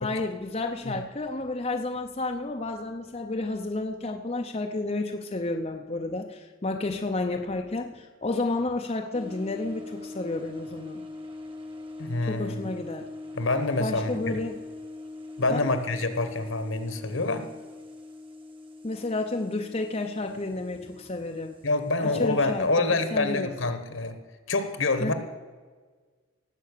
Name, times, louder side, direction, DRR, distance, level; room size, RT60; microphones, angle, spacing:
voice 1, 0.0-11.0 12.2-13.1 13.8-14.6 15.5-15.7 18.8-21.6 22.0-23.5 25.0-25.1, left 2 dB, 30° left, 3 dB, 0.6 m, -31 dB
sound 1, 9.1-23.3, left 2 dB, 25° right, 1.4 m, -43 dB
voice 2, 12.0-12.6 13.3-14.4 15.4-17.5 21.6-24.2 24.5-25.1, left 2 dB, 65° left, 9 dB, 1.3 m, -27 dB
18.0 x 7.7 x 6.7 m, 1.4 s
head